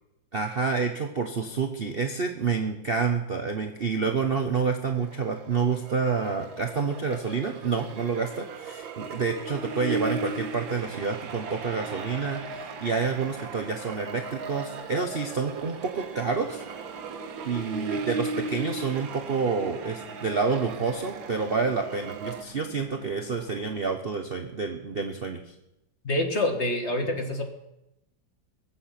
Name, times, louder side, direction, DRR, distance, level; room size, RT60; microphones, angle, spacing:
voice 1, 0.3-16.6 17.4-25.5, right 5 dB, 40° right, 4 dB, 0.9 m, -28 dB
sound 1, 5.0-22.4, right 3 dB, 85° right, 1.9 m, -37 dB
sound 2, 9.5-23.9, right 4 dB, 60° right, 2.2 m, -47 dB
voice 2, 26.0-27.4, left 1 dB, 35° left, 4 dB, 1.9 m, -26 dB
21.5 x 7.8 x 5.9 m, 0.88 s
omnidirectional pair, 2.1 m